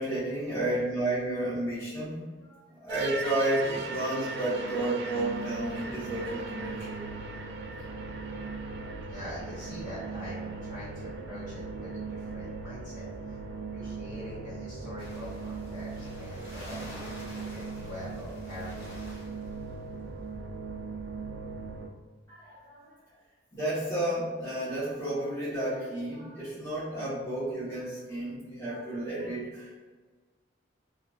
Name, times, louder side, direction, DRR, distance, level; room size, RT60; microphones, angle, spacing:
voice 1, 0.0-2.2 2.8-7.0 22.3-22.8 23.5-29.7, right 1 dB, 15° left, -14 dB, 0.9 m, -31 dB
sound 1, 2.9-21.9, right 4 dB, 55° right, 0.3 m, -38 dB
voice 2, 9.0-13.4 13.7-17.0 17.3-19.2, left 1 dB, 40° left, -10 dB, 1.4 m, -44 dB
sound 2, 15.0-19.7, left 1 dB, 80° left, 1.2 m, -48 dB
2.5 x 2.2 x 3.2 m, 1.4 s
head